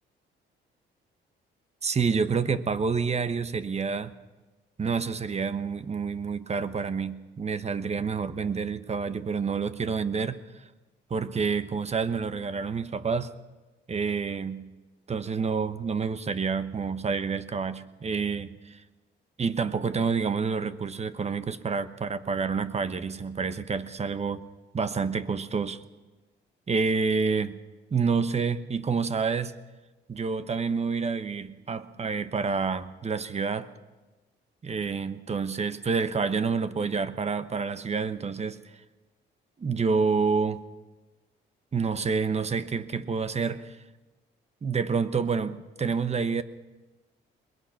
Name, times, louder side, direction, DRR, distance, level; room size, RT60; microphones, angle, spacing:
voice 1, 1.8-4.1 4.8-10.4 11.1-13.3 13.9-14.7 15.1-18.8 19.4-24.4 24.7-25.8 26.7-27.6 27.9-29.5 30.1-33.7 34.6-38.6 39.6-40.6 41.7-43.8 44.6-46.4, right 5 dB, 35° right, 12 dB, 1.1 m, -28 dB
21.5 x 21.0 x 5.9 m, 1.2 s
cardioid pair, 90°, 20 cm